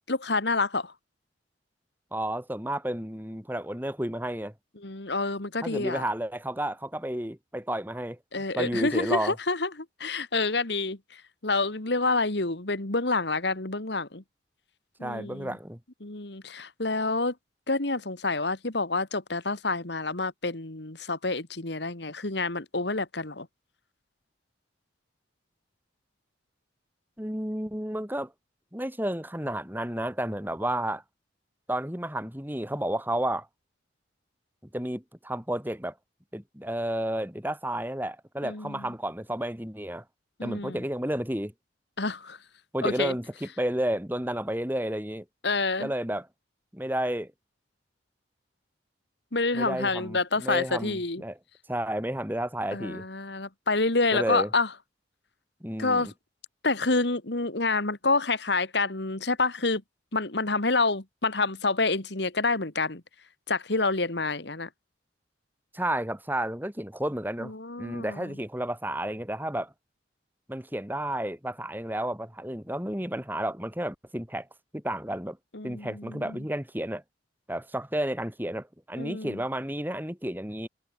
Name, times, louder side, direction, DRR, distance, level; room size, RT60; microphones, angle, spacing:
voice 1, 0.1-0.9 4.8-6.0 8.3-11.0 11.4-14.2 15.0-15.5 16.0-17.3 17.7-23.5 38.4-38.9 40.4-40.8 42.0-42.4 42.8-43.1 45.4-45.9 49.3-51.2 52.7-54.7 55.8-56.1 56.6-59.8 60.1-63.0 63.5-64.7 67.4-68.3 75.5-76.4 79.0-79.4, left 3 dB, 60° left, 2.1 m, -28 dB
voice 2, 2.1-4.5 5.6-8.2 8.6-9.4 15.0-15.8 27.2-28.3 28.7-31.0 31.7-33.5 34.7-35.9 36.3-40.0 40.4-41.5 42.7-45.2 45.8-46.3 46.7-47.3 49.5-51.4 51.7-53.0 54.1-54.5 55.6-56.1 65.7-67.5 67.8-69.7 70.5-74.5 74.7-75.4 75.6-77.0 77.5-80.7, right 1 dB, 10° right, 3.8 m, -31 dB
head